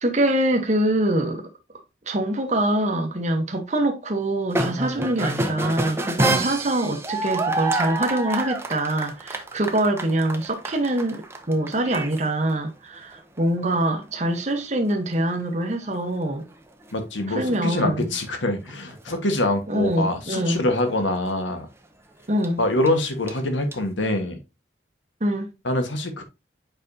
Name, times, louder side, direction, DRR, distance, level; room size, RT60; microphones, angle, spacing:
voice 1, 0.0-1.5 2.1-16.5 17.3-18.1 19.7-20.6 22.3-22.6 25.2-25.5, right 1 dB, 40° right, 1.0 m, -24 dB
sound 1, 4.5-12.2 12.5-12.6 13.1-13.8 14.1-14.2 14.6-14.7 14.9-15.2 16.9-17.0 17.3-17.7 18.3-19.5 20.6-20.9 21.3-21.4 22.4-23.7, right 2 dB, 15° right, 0.7 m, -28 dB
voice 2, 16.9-21.7 22.6-24.4 25.6-26.2, left 1 dB, 85° left, 1.4 m, -25 dB
7.8 x 5.1 x 2.7 m
head